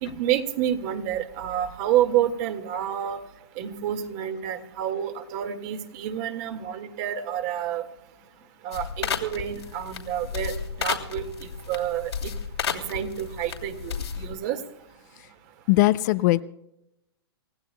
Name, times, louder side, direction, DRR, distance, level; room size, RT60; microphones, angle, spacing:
voice 1, 0.0-3.2 3.6-7.8 8.6-12.3 12.7-14.6, right 10 dB, 40° right, 7 dB, 1.8 m, -29 dB
sound 1, 8.7-14.4, left 7 dB, 85° left, 2.8 m, -33 dB
voice 2, 15.7-16.4, left 18 dB, 45° left, 14 dB, 0.5 m, -19 dB
28.5 x 15.5 x 2.2 m, 0.84 s
hypercardioid pair, 130°, 14 cm